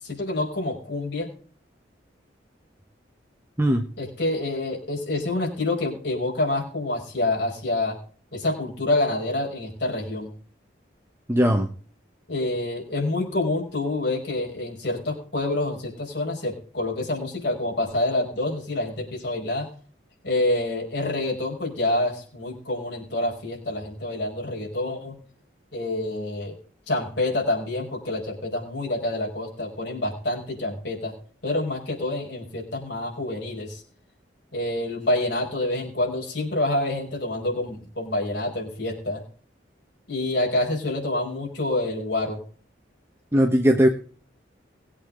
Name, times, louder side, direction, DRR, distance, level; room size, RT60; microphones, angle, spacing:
voice 1, 0.0-1.3 4.0-8.0 8.3-10.3 12.3-19.7 20.2-25.1 25.7-26.5 26.9-31.1 31.4-33.8 34.5-39.2 40.1-42.4, left 2 dB, 65° left, -1 dB, 5.1 m, -27 dB
voice 2, 11.3-11.7 43.3-43.9, equal, 15° right, 4 dB, 1.0 m, -19 dB
20.0 x 8.6 x 3.8 m, 0.43 s
head